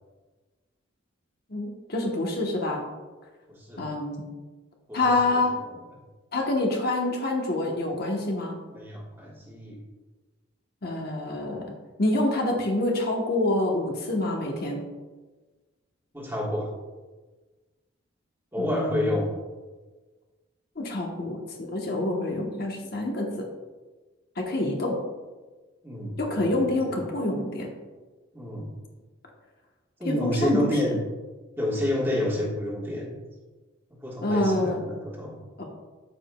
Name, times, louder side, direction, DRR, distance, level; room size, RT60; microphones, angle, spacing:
voice 1, 1.5-2.8 3.8-4.2 4.9-5.5 6.3-8.6 10.8-11.7 12.0-14.8 18.6-19.2 20.8-23.4 24.4-25.0 26.2-27.7 30.0-30.6 34.2-34.8 35.6-35.7, left 2 dB, 45° left, 0 dB, 1.0 m, -27 dB
voice 2, 3.5-3.9 4.9-5.4 5.7-5.8 8.7-9.8 16.1-16.7 18.5-19.3 25.8-26.9 28.3-28.7 30.0-31.0 31.6-33.1 33.9-35.4, left 1 dB, 10° right, -4 dB, 1.3 m, -29 dB
13.0 x 4.9 x 2.2 m, 1.3 s
head